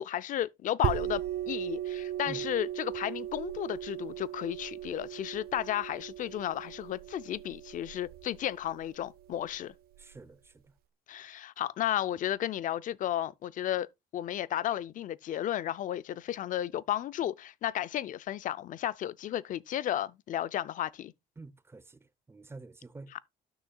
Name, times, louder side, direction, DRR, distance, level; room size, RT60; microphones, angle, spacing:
voice 1, 0.0-9.7 11.1-13.9 14.1-21.1 23.1-23.2, left 12 dB, 50° left, 0.4 m, -33 dB
sound 1, 0.8-10.2, right 12 dB, 65° right, 0.5 m, -38 dB
voice 2, 10.0-10.6 21.4-22.0 22.3-23.1, right 3 dB, 15° right, 0.6 m, -47 dB
12.5 x 6.1 x 2.3 m
cardioid pair, 110°, 17 cm